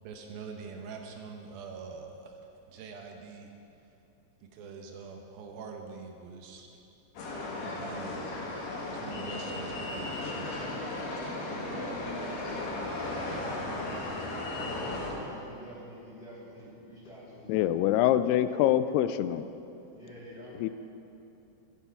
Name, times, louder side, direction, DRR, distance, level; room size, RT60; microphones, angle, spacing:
voice 1, 0.0-2.4 2.7-3.5 4.4-6.7 7.6-8.3 8.9-10.8 11.2-11.3, right 5 dB, 70° right, 2 dB, 2.4 m, -44 dB
sound 1, 7.2-15.1, left 2 dB, 65° left, 3.7 m, -35 dB
voice 2, 11.2-14.0 14.9-17.9 19.9-20.6, equal, 25° left, -10 dB, 3.8 m, -47 dB
voice 3, 17.5-19.4 20.6-20.7, left 12 dB, 90° left, 12 dB, 2.3 m, -25 dB
14.5 x 9.9 x 5.7 m, 2.8 s
omnidirectional pair, 5.2 m